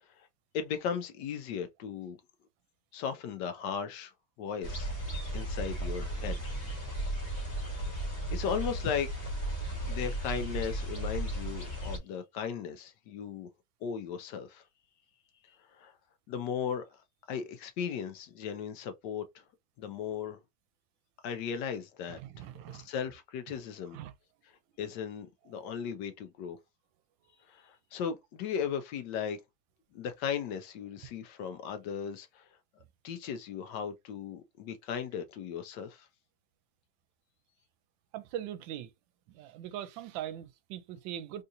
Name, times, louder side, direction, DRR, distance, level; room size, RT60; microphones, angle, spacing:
voice 1, 0.5-2.2 2.9-4.1 4.4-4.9 5.3-6.5 7.3-9.1 9.9-13.5 13.8-14.6 15.4-15.9 16.3-17.0 17.3-19.4 19.8-20.4 21.2-24.0 24.8-26.6 27.5-29.4 29.9-32.5 33.0-36.1, left 7 dB, 75° left, 1.1 m, -37 dB
sound 1, 4.6-12.0, right 1 dB, 40° left, 1.5 m, -35 dB
voice 2, 22.1-22.9 23.9-24.1 38.1-38.9 39.3-41.4, right 11 dB, 80° right, 1.3 m, -41 dB
3.6 x 2.7 x 2.5 m
omnidirectional pair, 2.1 m